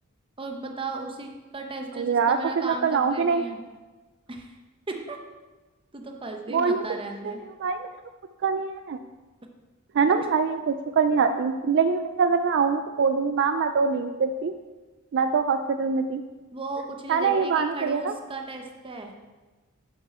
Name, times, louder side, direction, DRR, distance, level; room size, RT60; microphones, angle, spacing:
voice 1, 0.4-3.6 4.3-4.6 4.9-5.2 5.9-7.4 10.1-10.2 16.5-19.1, right 3 dB, 25° right, 3 dB, 0.9 m, -35 dB
voice 2, 2.0-3.4 6.5-6.9 7.2-7.9 8.4-9.0 9.9-14.5 15.1-16.2 17.1-18.1, right 5 dB, 55° right, 9 dB, 0.4 m, -24 dB
7.7 x 7.4 x 4.3 m, 1.2 s
head